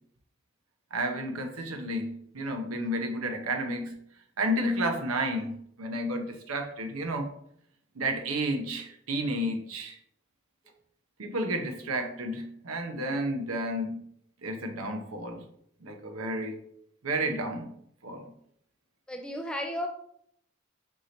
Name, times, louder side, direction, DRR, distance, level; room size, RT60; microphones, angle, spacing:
voice 1, 0.9-3.9 4.4-7.3 8.0-10.0 11.2-14.0 14.4-15.4 15.8-16.6 17.0-17.7 18.0-18.3, right 1 dB, 85° right, 5 dB, 0.8 m, -31 dB
voice 2, 19.1-19.9, left 1 dB, 5° left, 3 dB, 0.4 m, -33 dB
4.8 x 2.9 x 3.9 m, 0.69 s
head